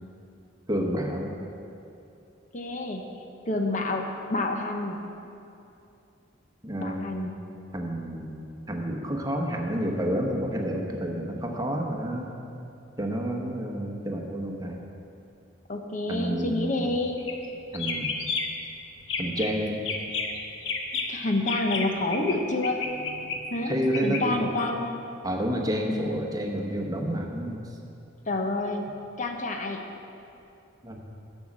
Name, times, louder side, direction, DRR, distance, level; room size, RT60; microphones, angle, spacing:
voice 1, 0.7-1.3 6.6-7.3 7.7-8.4 8.7-12.3 13.0-14.8 16.1-16.8 17.7-18.1 19.2-19.8 23.7-24.5 25.2-27.6 30.8-31.0, equal, 20° right, 1 dB, 1.0 m, -29 dB
voice 2, 2.5-3.0 3.5-5.0 6.8-7.3 15.7-17.2 21.1-22.8 23.5-25.0 25.9-26.2 28.3-28.9 29.2-29.8, left 2 dB, 40° left, 3 dB, 0.8 m, -28 dB
sound 1, 17.2-17.5 17.7-18.7 19.0-19.5 19.9-22.4 22.6-24.2, left 4 dB, 80° left, 1.0 m, -31 dB
10.5 x 6.3 x 7.2 m, 2.8 s
head